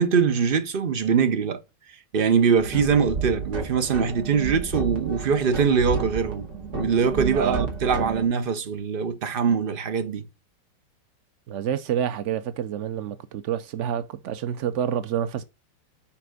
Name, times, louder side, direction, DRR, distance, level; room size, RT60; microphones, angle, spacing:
voice 1, 0.0-1.6 2.1-6.5 6.8-10.3, right 6 dB, 40° right, 0.9 m, -22 dB
sound 1, 2.6-8.2, right 4 dB, 65° right, 2.5 m, -32 dB
voice 2, 7.3-7.7 11.5-15.4, right 9 dB, 85° right, 0.6 m, -28 dB
5.9 x 4.9 x 6.2 m
omnidirectional pair, 1.9 m